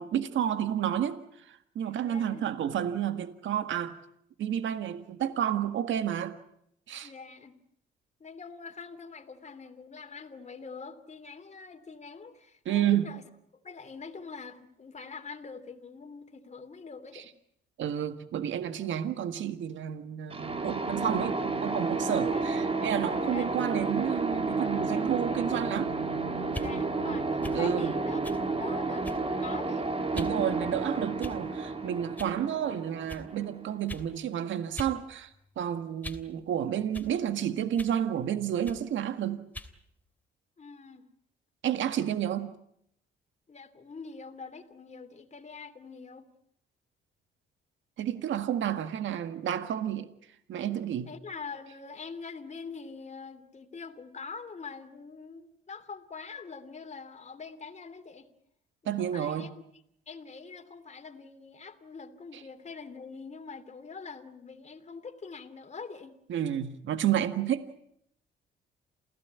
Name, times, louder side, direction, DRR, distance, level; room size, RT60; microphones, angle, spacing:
voice 1, 0.0-4.0 4.4-6.3 6.9-7.1 12.6-13.2 17.8-26.0 27.5-27.9 30.1-39.4 41.6-42.5 48.0-50.1 50.5-51.1 58.8-59.5 66.3-67.6, right 10 dB, 70° right, 10 dB, 1.8 m, -30 dB
voice 2, 1.8-2.4 7.0-7.5 8.2-13.2 13.6-17.3 22.3-22.6 23.1-23.5 26.5-28.2 28.6-29.9 40.6-41.1 43.5-46.3 51.0-58.3 58.8-59.5 60.1-66.2, left 5 dB, 35° left, 7 dB, 3.0 m, -44 dB
sound 1, 20.3-34.0, right 3 dB, 30° right, 2.8 m, -31 dB
sound 2, 26.5-26.7 27.4-27.6 28.2-28.4 29.0-29.3 30.1-30.4 31.2-31.6 32.2-32.4 33.1-33.2 33.9-34.1 34.8-35.0 35.3-36.3 36.9-37.1 37.8-38.0 38.6-38.8 39.5-39.7, left 1 dB, 10° left, 3.0 m, -41 dB
28.5 x 16.5 x 9.5 m, 0.75 s
cardioid pair, 90°, 20 cm